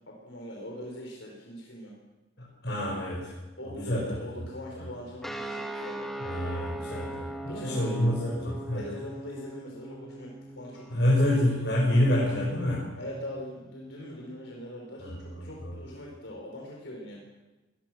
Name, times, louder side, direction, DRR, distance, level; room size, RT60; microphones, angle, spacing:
voice 1, 0.0-1.9 3.6-6.1 7.5-7.9 8.7-11.0 11.4-11.7 13.0-17.2, left 1 dB, 90° left, -1 dB, 4.9 m, -42 dB
voice 2, 2.4-3.3 3.7-4.1 4.8-4.9 6.2-8.9 10.9-12.8 15.0-15.8, left 1 dB, 60° left, -4 dB, 6.2 m, -27 dB
sound 1, 5.2-14.2, right 1 dB, ahead, 1.7 m, -41 dB
23.5 x 21.0 x 6.4 m, 1.1 s
head